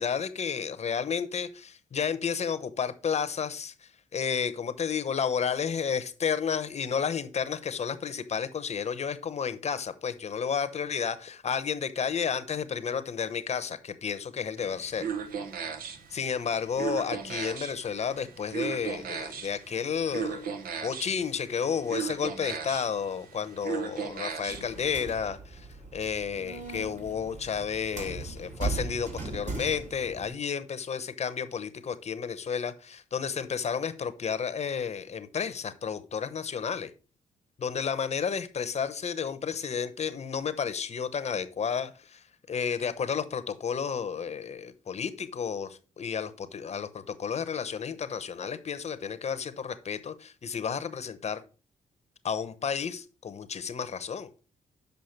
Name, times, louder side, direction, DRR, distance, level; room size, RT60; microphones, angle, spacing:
voice 1, 0.0-3.7 4.1-15.1 16.1-20.5 20.8-25.7 25.9-36.9 37.6-51.4 52.2-54.3, left 7 dB, 45° left, 13 dB, 0.8 m, -32 dB
sound 1, 14.6-24.8, right 7 dB, 75° right, 0.9 m, -37 dB
sound 2, 24.5-30.3, right 3 dB, 50° right, 2.4 m, -38 dB
6.5 x 5.1 x 4.5 m, 0.35 s
supercardioid pair, 60°, 15 cm